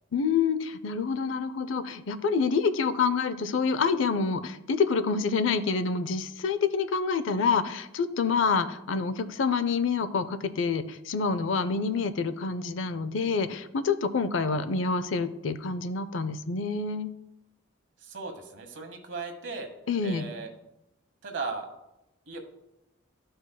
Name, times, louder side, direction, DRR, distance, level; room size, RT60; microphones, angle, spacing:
voice 1, 0.1-17.1 19.9-20.3, left 5 dB, 75° left, 12 dB, 0.5 m, -27 dB
voice 2, 18.0-19.7 20.0-20.5 21.2-21.7 22.3-22.4, right 4 dB, 65° right, 4 dB, 1.2 m, -37 dB
13.0 x 5.1 x 2.3 m, 0.88 s
head